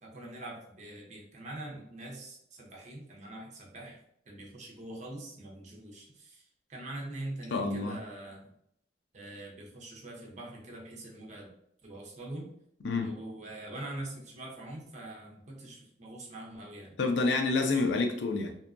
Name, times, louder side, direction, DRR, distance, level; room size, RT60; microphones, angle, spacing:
voice 1, 0.0-4.0 4.3-6.4 6.7-8.5 9.1-11.5 11.8-12.5 13.0-17.0 17.6-17.7, right 1 dB, 45° right, 0 dB, 0.6 m, -43 dB
voice 2, 7.5-8.0 12.8-13.1 17.0-18.6, left 3 dB, 85° left, 5 dB, 0.4 m, -28 dB
2.7 x 2.2 x 2.4 m, 0.73 s
head